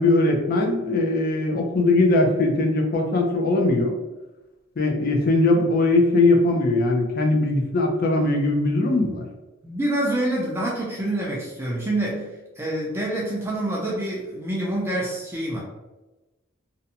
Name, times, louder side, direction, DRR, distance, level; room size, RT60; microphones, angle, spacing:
voice 1, 0.0-3.9 4.8-9.2, left 2 dB, 45° left, 2 dB, 0.5 m, -20 dB
voice 2, 9.6-12.3 12.6-15.6, right 1 dB, 10° right, -5 dB, 0.4 m, -26 dB
2.6 x 2.2 x 2.7 m, 1.1 s
head